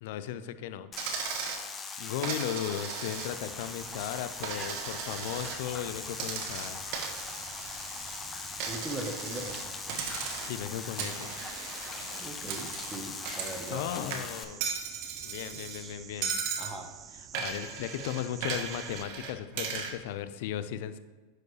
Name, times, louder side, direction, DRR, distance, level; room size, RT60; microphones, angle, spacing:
voice 1, 0.0-0.9 2.0-6.8 10.4-11.3 13.7-14.6 15.2-16.4 17.1-21.0, left 10 dB, 65° left, 12 dB, 0.5 m, -36 dB
sound 1, 0.9-14.4, left 5 dB, 25° left, 0.8 m, -41 dB
Coin (dropping), 1.0-1.6 2.2-3.5 3.9-5.6 6.1-8.2 8.6-9.6 9.9-10.6 11.0-13.8 14.1-15.8 16.2-16.8 17.3-20.0, right 6 dB, 60° right, 1.2 m, -37 dB
sound 2, 3.1-19.0, right 8 dB, 30° right, 0.4 m, -49 dB
voice 2, 8.7-9.6 9.9-10.0 12.2-14.1 15.5-16.0 16.6-16.9, right 2 dB, 15° right, 3 dB, 1.1 m, -40 dB
10.5 x 4.8 x 3.2 m, 1.4 s
hypercardioid pair, 100°, 0 cm